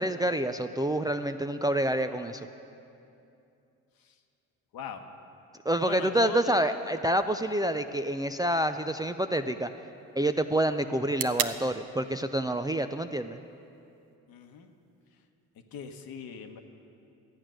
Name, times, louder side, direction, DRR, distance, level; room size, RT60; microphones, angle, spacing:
voice 1, 0.0-2.4 5.7-9.7 10.2-13.4, right 1 dB, 10° right, 7 dB, 0.4 m, -28 dB
voice 2, 5.8-6.6 14.3-14.7 15.7-16.6, left 6 dB, 60° left, 6 dB, 1.1 m, -39 dB
sound 1, 7.1-15.1, right 10 dB, 60° right, 0.7 m, -42 dB
13.0 x 8.7 x 6.3 m, 2.7 s
hypercardioid pair, 50°, 39 cm